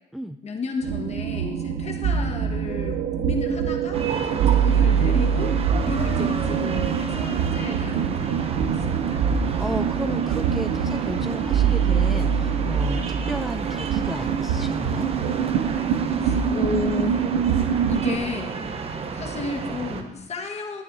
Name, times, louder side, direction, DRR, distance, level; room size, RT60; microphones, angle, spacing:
voice 1, 0.4-5.5 5.8-9.2 16.1-17.2 17.9-18.6 19.1-20.8, left 4 dB, 40° left, 2 dB, 1.5 m, -32 dB
sound 1, 0.8-18.2, right 7 dB, 80° right, 0.7 m, -24 dB
sound 2, 3.9-20.0, right 5 dB, 35° right, 1.0 m, -32 dB
voice 2, 6.1-6.7 9.6-13.0 13.3-15.1, equal, ahead, 8 dB, 0.3 m, -33 dB
13.0 x 9.3 x 2.7 m, 0.96 s
cardioid pair, 110°, 17 cm